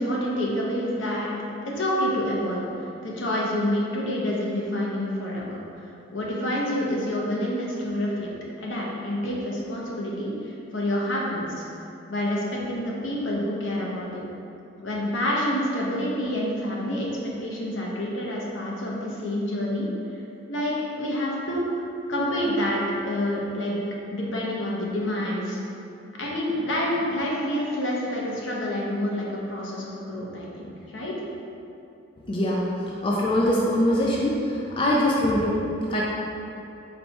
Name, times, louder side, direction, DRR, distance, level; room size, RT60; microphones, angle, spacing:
voice 1, 0.0-1.3 1.7-8.3 8.6-11.5 12.1-14.2 14.8-20.2 20.5-23.8 24.1-25.6 26.1-31.1, left 1 dB, 70° left, -4 dB, 0.8 m, -28 dB
voice 2, 32.3-36.0, left 1 dB, 25° left, -4 dB, 0.3 m, -23 dB
4.2 x 2.3 x 4.1 m, 2.8 s
head